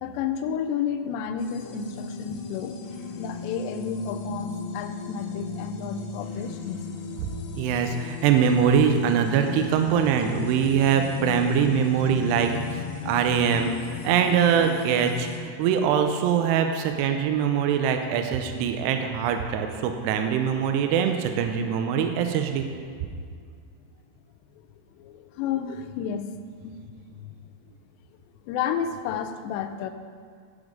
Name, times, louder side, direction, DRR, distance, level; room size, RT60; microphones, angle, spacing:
voice 1, 0.0-2.8 3.2-6.9 25.0-26.3 26.6-26.8 28.4-29.9, left 7 dB, 90° left, 8 dB, 2.8 m, -31 dB
sound 1, 1.4-15.4, left 5 dB, 75° left, 2.5 m, -36 dB
voice 2, 7.6-13.7 14.0-22.7, right 7 dB, 85° right, 6 dB, 2.7 m, -23 dB
9.7 x 7.1 x 5.1 m, 2.1 s
omnidirectional pair, 4.9 m